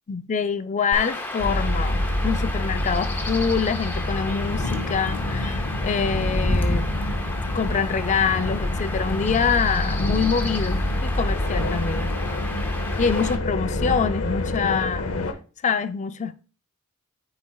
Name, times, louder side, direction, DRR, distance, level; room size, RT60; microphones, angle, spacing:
voice 1, 0.1-6.9 7.5-12.2 13.0-15.1 15.6-16.4, left 6 dB, 35° left, 0.4 m, -25 dB
Chirp tweet / Wind / Stream, 0.9-13.4, left 1 dB, 10° left, 0.7 m, -32 dB
sound 1, 1.4-15.3, left 1 dB, 90° left, 0.7 m, -27 dB
9.5 x 4.3 x 2.3 m
head